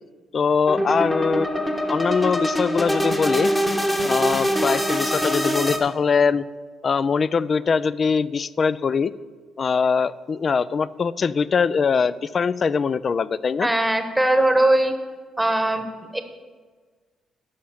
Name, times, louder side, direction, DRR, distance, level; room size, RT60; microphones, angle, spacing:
voice 1, 0.3-1.5 1.9-3.5 4.0-6.4 6.8-9.1 9.6-13.7, left 5 dB, 45° left, 18 dB, 0.4 m, -22 dB
sound 1, 0.7-5.8, equal, 15° left, 1.4 m, -23 dB
voice 2, 13.6-14.9 15.4-15.9 16.1-16.2, right 1 dB, 5° right, 7 dB, 1.2 m, -20 dB
11.5 x 5.8 x 7.3 m, 1.4 s
cardioid pair, 90°, 0 cm